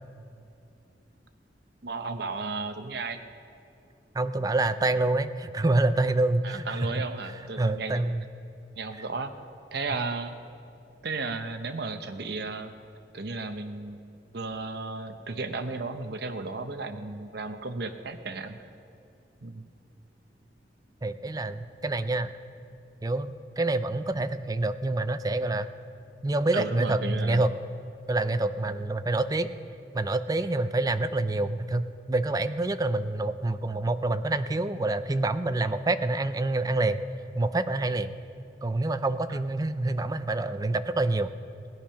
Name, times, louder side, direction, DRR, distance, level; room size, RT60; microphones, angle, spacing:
voice 1, 1.8-3.2 6.4-8.0 8.8-9.3 9.7-10.3 11.0-12.7 13.1-14.0 14.3-18.6 19.4-19.7 26.5-27.5 39.3-39.4, right 3 dB, 65° right, 8 dB, 0.9 m, -34 dB
voice 2, 4.1-7.1 7.6-8.2 21.0-22.3 23.0-25.7 26.2-27.5 28.1-29.5 29.9-37.0 37.3-38.1 38.6-41.3, right 2 dB, 20° right, 11 dB, 0.5 m, -27 dB
17.0 x 10.5 x 5.7 m, 2.6 s
head